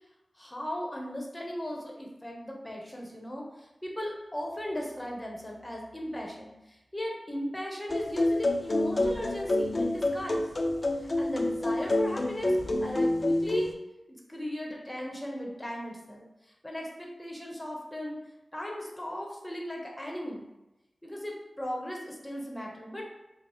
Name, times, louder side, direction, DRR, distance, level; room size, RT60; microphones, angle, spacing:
voice 1, 0.4-10.5 11.0-13.7 14.1-16.3 16.6-18.2 18.5-20.4 21.0-23.0, equal, 20° left, -1 dB, 0.9 m, -37 dB
sound 1, 7.9-13.7, left 1 dB, 45° left, 0.5 m, -28 dB
5.0 x 2.0 x 3.1 m, 0.96 s
cardioid pair, 45°, 0 cm